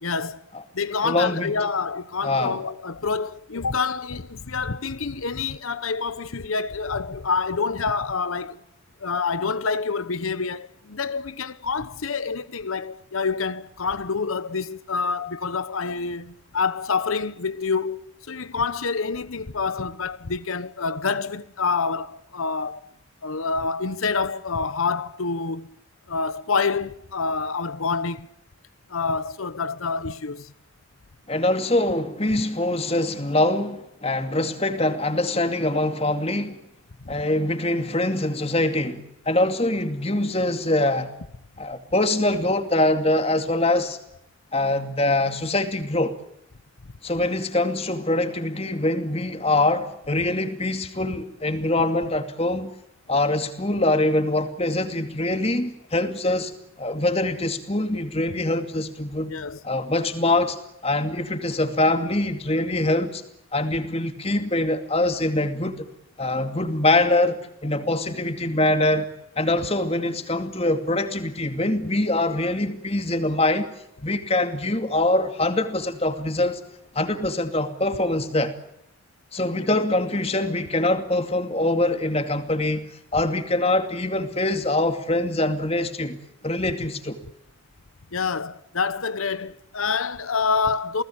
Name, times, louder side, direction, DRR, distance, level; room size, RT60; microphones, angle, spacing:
voice 1, 0.0-0.4 0.7-8.6 9.0-22.9 23.2-25.7 26.1-28.3 28.9-30.5 32.3-32.4 37.0-37.1 59.3-59.6 79.7-79.8 88.1-91.0, left 4 dB, 90° left, 1.0 m, -27 dB
voice 2, 1.0-1.6 2.2-2.6 31.3-36.6 37.1-41.1 41.6-44.0 44.5-46.2 47.0-52.7 53.1-59.3 59.6-60.6 60.8-63.2 63.5-65.9 66.2-69.1 69.4-73.7 74.0-76.6 76.9-78.5 79.3-86.2 86.4-87.2, left 2 dB, 30° left, 2.5 m, -24 dB
29.5 x 19.0 x 8.8 m
head